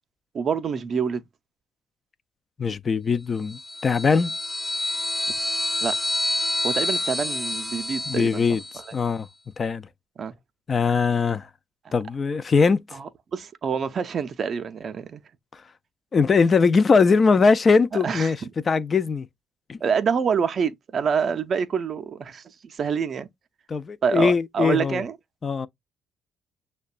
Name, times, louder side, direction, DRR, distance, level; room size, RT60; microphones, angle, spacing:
voice 1, 0.3-1.2 5.8-6.0 6.6-8.5 8.9-9.0 10.2-10.3 12.9-15.2 18.0-18.5 19.8-23.3 24.0-25.2, right 6 dB, 50° right, 0.5 m, -26 dB
voice 2, 2.6-4.3 8.1-8.6 8.9-9.3 9.6-9.8 10.7-11.5 11.9-12.8 16.1-18.4 18.7-19.3 19.7-19.8 23.7-25.0 25.4-25.7, left 5 dB, 40° left, 0.4 m, -21 dB
sound 1, 3.5-8.9, left 1 dB, 5° left, 0.6 m, -28 dB
6.4 x 2.2 x 2.3 m
hypercardioid pair, 55°, 0 cm